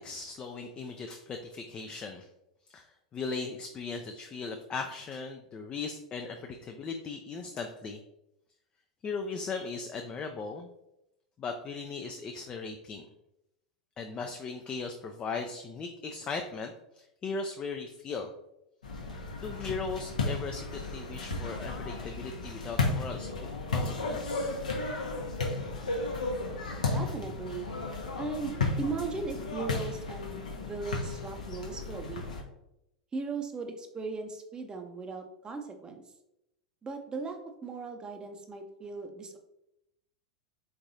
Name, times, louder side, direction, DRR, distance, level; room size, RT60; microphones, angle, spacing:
voice 1, 0.0-2.3 2.7-2.9 3.1-8.0 9.0-10.7 11.4-13.1 14.0-18.3 19.4-23.3 23.7-24.5, left 4 dB, 25° left, 4 dB, 0.3 m, -38 dB
sound 1, 18.8-32.4, left 3 dB, 80° left, 0.8 m, -34 dB
voice 2, 26.4-27.7 28.2-32.2 33.1-36.0 36.8-39.4, right 4 dB, 20° right, 5 dB, 0.6 m, -38 dB
3.6 x 3.2 x 2.6 m, 0.86 s
figure-of-eight pair, 90°, 4 cm